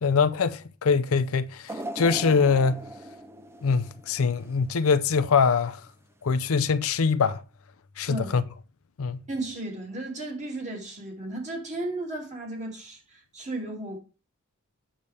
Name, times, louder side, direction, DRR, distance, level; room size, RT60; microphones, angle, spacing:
voice 1, 0.0-2.9 3.6-5.8 6.2-7.4 8.0-8.4 9.0-9.2, left 5 dB, 65° left, 0.5 m, -23 dB
sound 1, 1.7-4.8 5.3-5.4 6.4-6.5, right 1 dB, 10° right, 0.5 m, -39 dB
voice 2, 9.3-14.0, right 2 dB, 30° right, 2.5 m, -34 dB
8.7 x 6.8 x 3.4 m
head